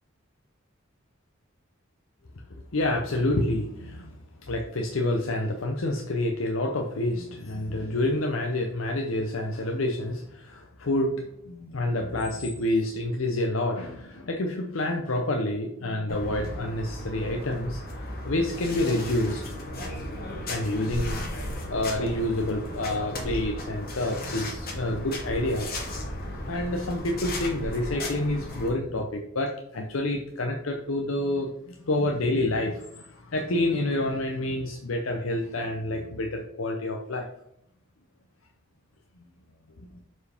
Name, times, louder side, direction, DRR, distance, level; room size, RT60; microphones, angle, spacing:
voice 1, 2.7-4.2 4.5-19.4 19.7-19.9 20.4-25.7 26.5-37.3 39.8-39.9, left 1 dB, 75° left, 2 dB, 0.7 m, -28 dB
sound 1, 16.1-28.7, left 1 dB, 45° left, 1.5 m, -35 dB
6.9 x 4.6 x 3.5 m, 0.75 s
head